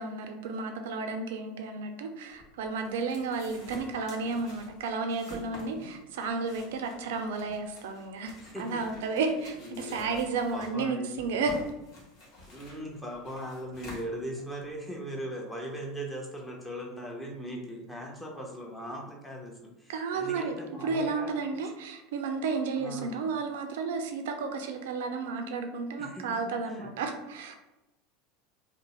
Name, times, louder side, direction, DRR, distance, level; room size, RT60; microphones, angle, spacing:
voice 1, 0.0-11.7 19.9-27.5, right 4 dB, 70° right, 6 dB, 0.4 m, -32 dB
sound 1, 2.3-14.8, left 1 dB, 55° left, 0.9 m, -49 dB
voice 2, 8.4-8.8 9.6-10.1 10.5-11.1 12.5-21.3 22.8-23.2 26.0-26.2 26.7-26.9, equal, 10° left, -2 dB, 0.8 m, -39 dB
2.6 x 2.0 x 3.0 m, 0.97 s
hypercardioid pair, 85°, 0 cm